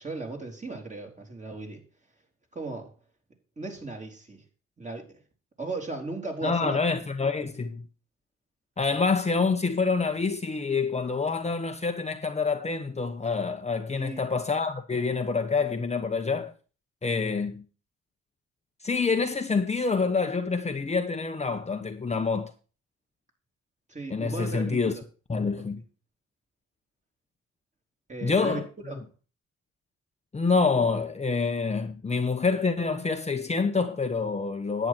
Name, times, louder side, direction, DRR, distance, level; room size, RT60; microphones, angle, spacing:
voice 1, 0.0-1.8 2.5-2.9 3.6-4.4 4.8-5.2 5.6-6.8 13.9-14.2 23.9-25.0 28.1-29.0, right 3 dB, 25° right, 3.8 m, -36 dB
voice 2, 6.4-7.8 8.8-16.5 17.0-17.6 18.8-22.5 24.1-24.9 25.3-25.8 28.2-28.7 30.3-34.9, left 4 dB, 20° left, 1.1 m, -27 dB
10.5 x 8.9 x 4.5 m
cardioid pair, 90°, 30 cm